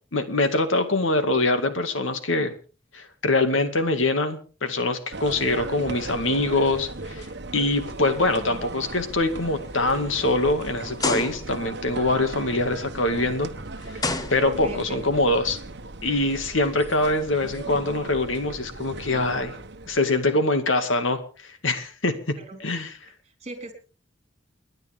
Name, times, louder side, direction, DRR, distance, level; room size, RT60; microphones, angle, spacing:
voice 1, 0.1-2.5 2.9-7.3 7.5-13.5 13.9-14.0 14.3-15.6 16.0-19.5 19.9-22.3 22.6-22.9, left 2 dB, 85° left, 8 dB, 2.2 m, -24 dB
sound 1, 5.1-20.3, right 2 dB, 60° right, 1.1 m, -37 dB
sound 2, 7.8-8.2 8.7-8.8 9.5-9.6 11.0-11.7 13.2-13.3 14.0-14.9, left 2 dB, 20° left, 1.1 m, -29 dB
voice 2, 14.4-15.0 22.4-22.6 23.2-23.7, right 2 dB, 30° right, 5 dB, 3.9 m, -38 dB
29.5 x 10.5 x 3.6 m, 0.37 s
head